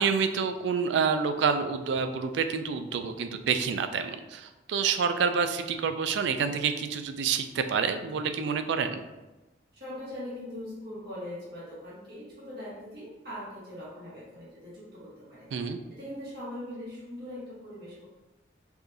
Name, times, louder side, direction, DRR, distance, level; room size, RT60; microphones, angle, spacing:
voice 1, 0.0-9.0 15.5-15.8, right 6 dB, 70° right, 9 dB, 0.3 m, -28 dB
voice 2, 9.7-15.5 15.9-18.1, left 1 dB, 55° right, -9 dB, 1.5 m, -41 dB
4.7 x 2.6 x 2.6 m, 1.1 s
head